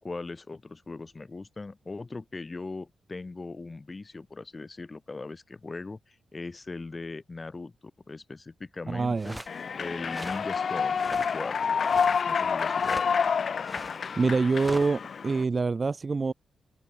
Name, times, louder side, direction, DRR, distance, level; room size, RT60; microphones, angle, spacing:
voice 1, 0.0-9.4 9.7-11.7 12.3-13.1, left 3 dB, 30° left, 3.2 m, -39 dB
voice 2, 8.9-9.3 14.2-16.3, right 4 dB, 35° right, 0.9 m, -26 dB
sound 1, 9.2-9.6 10.1-10.5 10.9-11.4 11.7-12.2 12.8-13.1 13.6-14.9, right 1 dB, 5° right, 1.7 m, -41 dB
Human voice / Clapping / Cheering, 9.5-15.4, left 6 dB, 55° left, 0.8 m, -28 dB
open air
cardioid pair, 85°, 0 cm